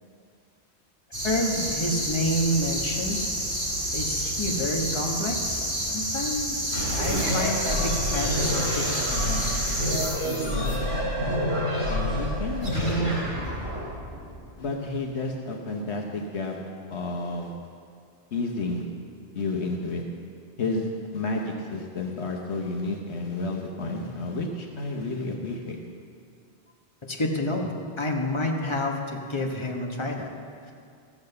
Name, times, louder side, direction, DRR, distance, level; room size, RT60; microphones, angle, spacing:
sound 1, 1.1-10.1, right 1 dB, 20° right, 3.1 m, -29 dB
voice 1, 1.2-3.3 3.9-9.8 10.2-10.8 27.0-27.7 28.0-30.3, left 1 dB, 25° left, 1 dB, 1.2 m, -29 dB
sound 2, 6.7-14.9, equal, 65° right, 4.3 m, -28 dB
voice 2, 11.9-13.2 14.6-16.6 16.9-17.5 18.3-18.8 19.3-20.0 20.6-25.8, left 2 dB, 80° left, 1 dB, 1.3 m, -31 dB
14.0 x 7.2 x 6.7 m, 2.3 s
omnidirectional pair, 1.1 m